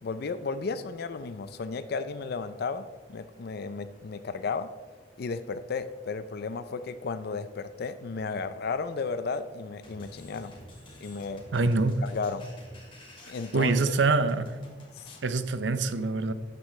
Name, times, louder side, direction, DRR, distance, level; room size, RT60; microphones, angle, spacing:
voice 1, 0.0-4.7 5.2-10.6 11.0-11.4 12.0-12.5 13.3-13.9 15.0-15.1, left 4 dB, 60° left, 0.4 m, -34 dB
sound 1, 9.8-15.3, left 1 dB, 30° left, 2.2 m, -50 dB
voice 2, 11.5-12.1 13.5-14.5 15.2-16.3, right 3 dB, 80° right, 0.7 m, -25 dB
13.5 x 9.4 x 3.2 m
head